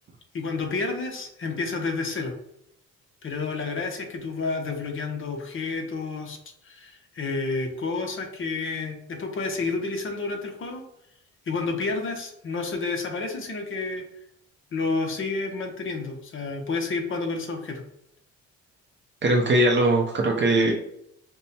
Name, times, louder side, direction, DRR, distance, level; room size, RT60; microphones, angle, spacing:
voice 1, 0.3-2.3 3.2-6.4 6.6-10.8 11.5-14.0 14.7-17.8, left 3 dB, 45° left, 4 dB, 0.8 m, -30 dB
voice 2, 19.2-20.7, right 1 dB, 40° right, 0 dB, 0.6 m, -20 dB
5.4 x 2.1 x 2.7 m, 0.75 s
cardioid pair, 90°, 30 cm